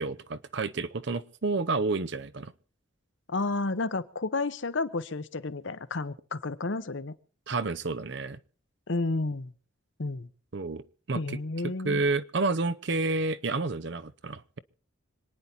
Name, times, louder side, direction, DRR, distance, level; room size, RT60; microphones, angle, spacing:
voice 1, 0.0-2.5 7.5-8.4 10.5-11.4 11.6-14.6, right 3 dB, 60° right, 15 dB, 0.7 m, -30 dB
voice 2, 3.3-7.1 8.9-9.5 10.0-10.3 11.1-12.0, left 3 dB, 65° left, 14 dB, 0.9 m, -31 dB
26.0 x 9.7 x 4.3 m, 0.40 s
head